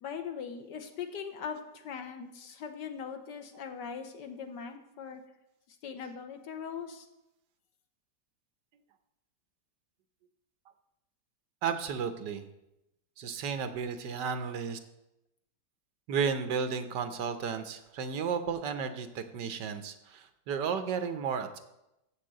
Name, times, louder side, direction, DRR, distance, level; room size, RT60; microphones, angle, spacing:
voice 1, 0.0-5.2 5.7-7.1, left 7 dB, 75° left, 6 dB, 1.6 m, -40 dB
voice 2, 11.6-12.5 13.2-14.8 16.1-21.6, right 6 dB, 75° right, 9 dB, 1.4 m, -33 dB
7.9 x 6.6 x 7.5 m, 0.89 s
omnidirectional pair, 1.9 m